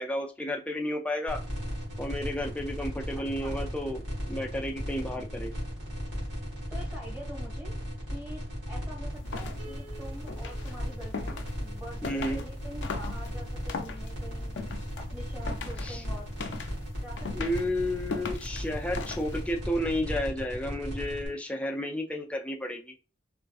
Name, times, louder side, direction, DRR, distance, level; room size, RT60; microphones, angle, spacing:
voice 1, 0.0-1.4 2.0-5.5 12.0-12.4 15.8-16.0 17.3-22.9, left 1 dB, 5° left, 2 dB, 0.3 m, -32 dB
sound 1, 1.3-21.3, equal, 65° right, 1.4 m, -36 dB
voice 2, 3.1-3.6 6.7-7.7 8.1-8.4 8.7-14.6 15.0-16.3 17.0-17.5, equal, 15° right, -3 dB, 1.5 m, -45 dB
sound 2, 9.1-19.6, left 4 dB, 75° left, 0.4 m, -40 dB
Piano, 9.6-12.8, right 2 dB, 40° right, 0.8 m, -53 dB
3.4 x 2.5 x 2.3 m, 0.33 s
head